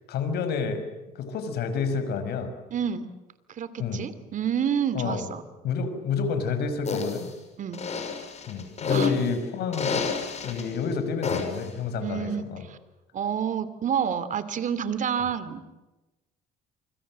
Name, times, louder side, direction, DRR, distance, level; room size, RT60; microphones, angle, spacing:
voice 1, 0.1-0.8 1.2-2.5 3.8-4.0 4.9-5.2 5.6-7.3 8.5-10.0 10.4-12.6, left 5 dB, 75° left, 9 dB, 6.0 m, -29 dB
voice 2, 2.7-3.1 3.5-5.4 7.6-7.8 8.9-9.1 12.0-12.8 13.1-15.6, right 8 dB, 50° right, 14 dB, 2.8 m, -29 dB
sound 1, 6.9-7.3 7.7-9.3 9.7-10.6 11.2-11.7, left 5 dB, 40° left, 6.3 m, -29 dB
28.0 x 25.0 x 7.6 m, 1.1 s
cardioid pair, 110°, 17 cm